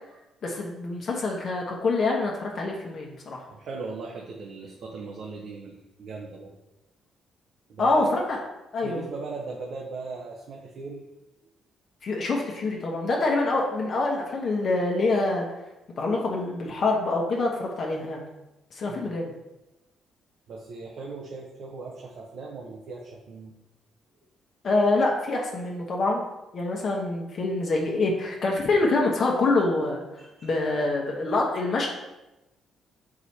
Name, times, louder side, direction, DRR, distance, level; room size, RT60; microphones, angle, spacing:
voice 1, 0.4-3.4 7.8-8.4 8.7-9.0 12.0-15.5 16.0-18.2 18.7-19.3 24.6-26.2 26.5-30.0 30.4-31.9, left 2 dB, 45° left, -1 dB, 1.0 m, -25 dB
voice 2, 3.5-6.6 7.7-8.1 8.8-11.0 18.9-19.2 20.5-23.5 30.2-30.5, right 3 dB, 55° right, -1 dB, 0.9 m, -38 dB
6.2 x 4.8 x 4.2 m, 0.98 s
cardioid pair, 140°, 0 cm